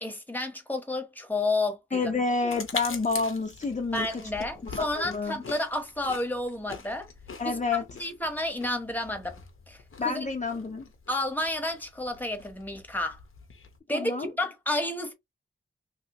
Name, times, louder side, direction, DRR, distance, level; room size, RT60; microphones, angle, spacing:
voice 1, 0.0-2.1 3.9-7.1 7.4-7.6 8.0-9.4 9.7-10.3 11.1-13.2 13.9-15.1, left 2 dB, 10° left, 1.0 m, -31 dB
voice 2, 1.9-4.1 4.6-5.4 7.4-7.8 10.0-10.9 13.9-14.3, left 4 dB, 35° left, 0.6 m, -29 dB
sound 1, 2.5-13.8, left 5 dB, 80° left, 0.8 m, -43 dB
3.0 x 2.8 x 2.9 m
wide cardioid pair, 95°, 21 cm